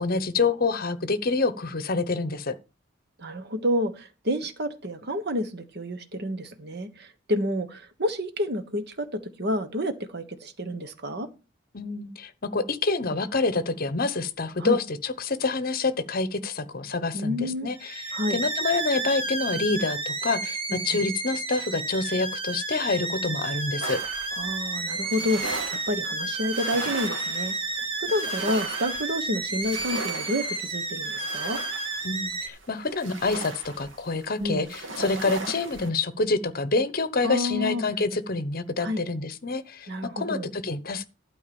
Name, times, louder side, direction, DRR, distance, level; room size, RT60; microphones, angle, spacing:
voice 1, 0.0-2.5 11.7-18.0 18.3-20.6 20.8-24.0 32.0-39.9 40.2-41.1, left 3 dB, 50° left, 1.0 m, -27 dB
voice 2, 3.2-9.1 9.4-11.3 14.6-14.8 17.1-17.7 18.1-18.4 20.7-21.0 24.4-25.6 25.9-27.5 28.0-31.6 34.4-34.6 37.2-37.8 38.8-39.0 39.9-40.5, left 1 dB, 55° right, 1.3 m, -29 dB
sound 1, 17.7-32.5, right 3 dB, 30° right, 1.5 m, -31 dB
sound 2, 23.8-35.9, right 3 dB, 75° right, 2.5 m, -37 dB
12.0 x 4.7 x 7.0 m
head